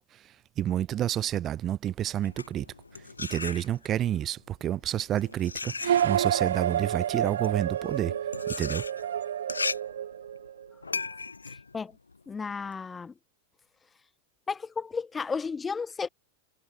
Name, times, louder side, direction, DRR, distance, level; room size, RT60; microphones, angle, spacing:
voice 1, 0.6-2.6 3.2-8.1 8.5-8.8, right 11 dB, 30° right, 1.5 m, -29 dB
sound 1, 2.1-4.1 4.9-12.8, left 4 dB, 80° left, 1.1 m, -37 dB
sound 2, 5.8-10.7, right 10 dB, 65° right, 1.3 m, -29 dB
voice 2, 11.5-12.0 12.3-13.1 14.5-16.1, left 5 dB, 15° left, 1.1 m, -33 dB
figure-of-eight pair, 90°, 0 cm